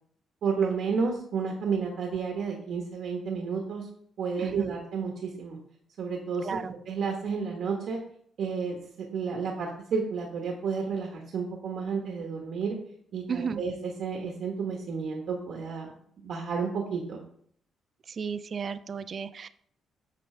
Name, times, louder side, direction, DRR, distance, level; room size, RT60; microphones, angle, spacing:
voice 1, 0.4-3.9 4.2-5.6 6.0-8.0 8.4-12.8 13.1-13.7 14.0-15.9 16.2-17.2, right 5 dB, 65° right, 1 dB, 1.1 m, -31 dB
voice 2, 4.4-4.7 6.4-6.7 13.3-13.6 18.1-19.5, right 6 dB, 40° right, 14 dB, 0.3 m, -33 dB
8.4 x 5.8 x 3.3 m, 0.64 s
cardioid pair, 140°, 0 cm